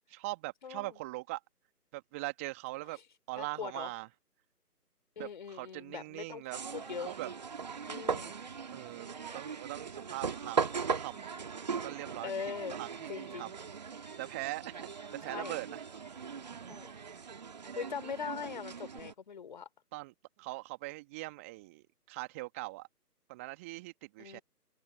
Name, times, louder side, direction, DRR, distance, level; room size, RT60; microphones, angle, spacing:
voice 1, 0.1-1.4 1.9-3.0 3.3-4.1 5.2-6.6 7.0-7.3 8.7-11.3 11.8-12.3 12.8-13.6 14.2-15.8 16.5-16.8 19.9-22.9 23.3-24.4, right 22 dB, 10° right, 2.2 m, -41 dB
voice 2, 0.6-1.0 3.4-3.9 5.2-6.4 6.7-7.1 7.9-8.3 12.2-12.8 13.1-13.5 15.3-15.6 16.7-16.9 17.8-19.7 24.2-24.4, left 6 dB, 30° left, 3.9 m, -41 dB
sound 1, 6.5-19.1, right 5 dB, 25° right, 2.1 m, -39 dB
open air
figure-of-eight pair, 155°, 47 cm